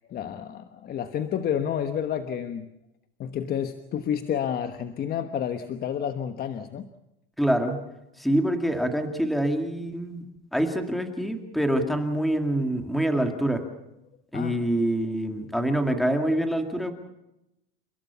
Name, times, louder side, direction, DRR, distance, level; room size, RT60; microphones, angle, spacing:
voice 1, 0.1-2.7 3.2-6.9 14.3-14.6, left 9 dB, 30° left, 8 dB, 1.2 m, -30 dB
voice 2, 7.4-7.8 8.2-10.2 10.5-13.6 14.3-16.9, right 1 dB, ahead, 5 dB, 2.2 m, -25 dB
30.0 x 17.0 x 7.0 m, 0.89 s
cardioid pair, 155°, 30 cm